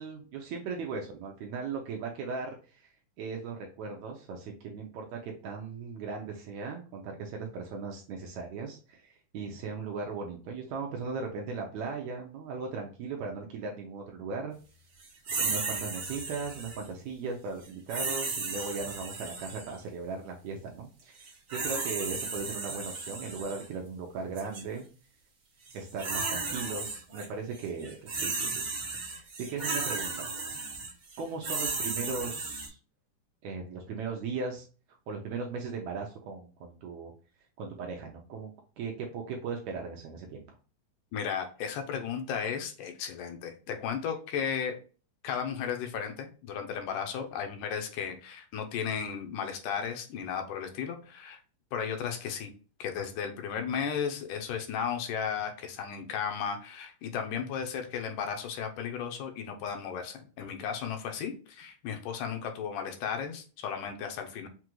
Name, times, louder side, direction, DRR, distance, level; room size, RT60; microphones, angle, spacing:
voice 1, 0.0-2.9 3.2-14.5 15.4-24.9 25.7-28.7 29.1-30.3 31.2-32.8 33.4-34.7 35.1-37.1 37.6-38.5 38.8-40.4, right 4 dB, 80° right, 1 dB, 1.7 m, -38 dB
sound 1, 15.3-16.9 17.9-19.8 21.2-23.6 24.4-24.6 25.7-27.3 27.6-32.7, right 4 dB, 55° right, 1.3 m, -34 dB
voice 2, 41.1-44.8 45.2-51.4 51.7-52.5 52.8-64.5, left 7 dB, 80° left, 4 dB, 2.1 m, -35 dB
5.9 x 2.4 x 3.0 m, 0.36 s
omnidirectional pair, 3.7 m